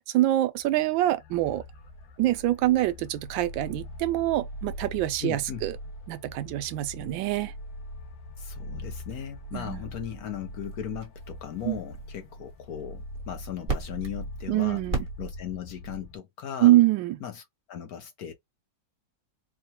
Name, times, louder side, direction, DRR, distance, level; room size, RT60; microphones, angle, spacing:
voice 1, 0.1-1.6 2.2-5.7 6.1-7.5 9.5-9.8 11.6-11.8 14.5-15.0 16.6-17.2, right 15 dB, 85° right, 1.3 m, -25 dB
sound 1, 0.6-16.2, left 1 dB, 90° left, 1.5 m, -42 dB
sound 2, 1.3-15.7, right 4 dB, 35° right, 1.4 m, -42 dB
voice 2, 5.2-5.6 8.4-14.8 15.2-16.8 17.2-17.4 17.7-18.3, left 9 dB, 65° left, 1.0 m, -37 dB
4.6 x 2.2 x 2.8 m
omnidirectional pair, 2.0 m